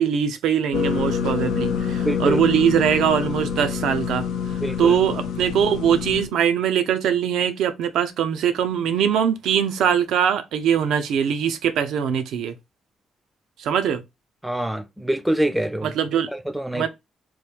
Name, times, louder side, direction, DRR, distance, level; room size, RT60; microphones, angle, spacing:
voice 1, 0.0-4.3 4.8-12.6 13.6-14.0 15.8-16.3 16.7-16.9, right 8 dB, 80° right, 0.5 m, -22 dB
sound 1, 0.7-6.3, left 7 dB, 85° left, 0.5 m, -26 dB
voice 2, 2.0-2.4 4.6-5.0 14.4-15.9 16.3-16.9, right 1 dB, 5° right, 0.4 m, -25 dB
3.0 x 2.3 x 3.3 m
cardioid pair, 90°, 0 cm